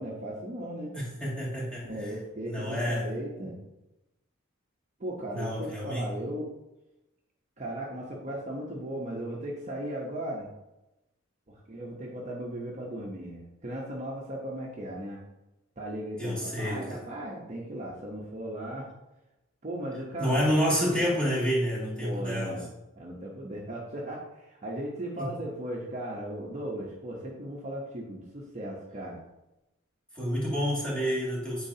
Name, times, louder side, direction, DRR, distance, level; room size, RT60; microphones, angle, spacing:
voice 1, 0.0-0.9 1.9-3.6 5.0-6.5 7.6-10.5 11.5-15.2 15.8-18.9 19.6-20.5 22.0-22.7 23.0-29.2, right 1 dB, 35° right, -3 dB, 0.9 m, -37 dB
voice 2, 0.9-2.1 2.5-3.1 5.3-6.1 16.2-17.0 20.2-22.6 25.2-25.3 30.1-31.7, equal, 5° left, -8 dB, 2.3 m, -29 dB
8.7 x 4.8 x 2.8 m, 0.95 s
head